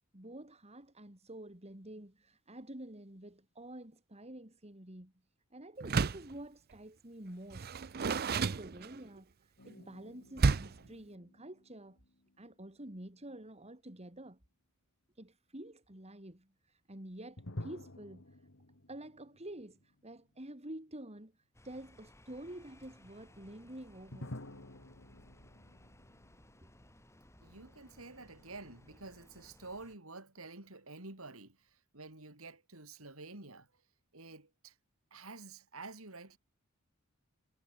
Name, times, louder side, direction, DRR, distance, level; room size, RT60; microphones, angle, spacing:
voice 1, 0.1-5.1 5.5-12.0 12.4-14.4 15.2-18.4 18.9-24.4, right 1 dB, 30° right, 3.6 m, -49 dB
Door, 5.8-6.3 7.5-9.2 10.4-10.9, right 4 dB, 45° right, 0.6 m, -31 dB
sound 1, 9.6-12.9 17.4-20.4 20.7-20.8 24.1-27.4, left 1 dB, 65° left, 2.7 m, -51 dB
sound 2, 21.5-30.0, left 1 dB, 15° left, 3.0 m, -61 dB
voice 2, 27.4-33.7 34.1-34.8 35.1-36.4, right 3 dB, 75° right, 4.5 m, -49 dB
head